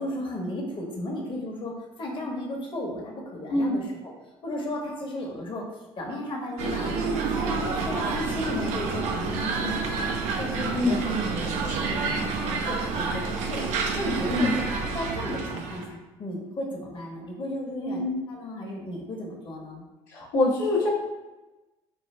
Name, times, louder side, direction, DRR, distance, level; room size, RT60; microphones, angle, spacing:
voice 1, 0.0-4.1 4.4-14.6 14.9-18.0 18.3-19.8, left 1 dB, 40° left, -1 dB, 1.1 m, -34 dB
sound 1, 6.6-15.8, right 4 dB, 70° right, 0.6 m, -29 dB
voice 2, 17.8-18.2 20.1-20.9, left 2 dB, 80° left, -6 dB, 1.0 m, -24 dB
4.5 x 2.3 x 3.3 m, 1.1 s
hypercardioid pair, 60°, 13 cm